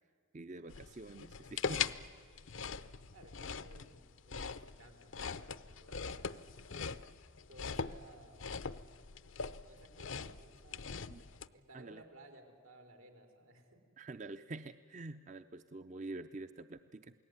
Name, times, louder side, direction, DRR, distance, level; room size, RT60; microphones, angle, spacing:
voice 1, 0.3-1.8 11.1-11.2 11.7-12.0 14.0-17.1, right 2 dB, 35° right, 10 dB, 0.6 m, -46 dB
sound 1, 0.7-11.5, left 5 dB, 65° left, 0.7 m, -42 dB
voice 2, 3.1-6.5 7.5-8.7 9.6-11.1 11.5-13.8, right 1 dB, 85° right, 5 dB, 4.1 m, -59 dB
28.5 x 18.5 x 9.6 m, 2.1 s
head